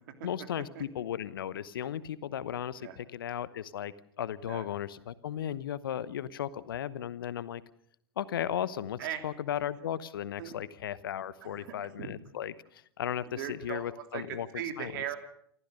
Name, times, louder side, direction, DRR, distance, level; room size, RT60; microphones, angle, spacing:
voice 1, 0.2-7.6 8.2-14.5 14.8-14.9, left 10 dB, 65° left, 17 dB, 1.0 m, -36 dB
voice 2, 11.4-12.1 13.2-15.2, right 10 dB, 55° right, 6 dB, 3.0 m, -39 dB
28.5 x 14.0 x 6.7 m, 0.67 s
figure-of-eight pair, 90°, 13 cm